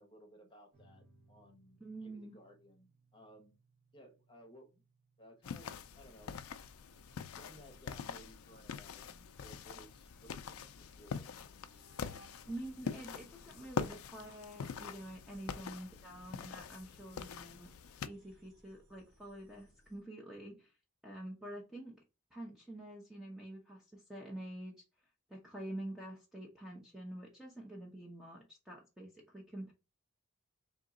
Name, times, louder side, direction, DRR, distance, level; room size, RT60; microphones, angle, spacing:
voice 1, 0.0-3.5 3.9-4.8 5.2-6.3 7.4-11.8, equal, 25° left, 3 dB, 1.0 m, -59 dB
sound 1, 0.7-11.7, right 2 dB, 30° right, 1.7 m, -72 dB
voice 2, 1.8-2.4 12.5-17.7 18.0-20.7 21.0-22.0 22.3-24.8 25.3-29.7, right 1 dB, ahead, -2 dB, 0.7 m, -47 dB
sound 2, 5.4-18.1, left 6 dB, 80° left, 0.4 m, -44 dB
sound 3, 5.7-20.0, equal, 55° right, 1.5 m, -65 dB
3.7 x 2.8 x 3.8 m, 0.29 s
head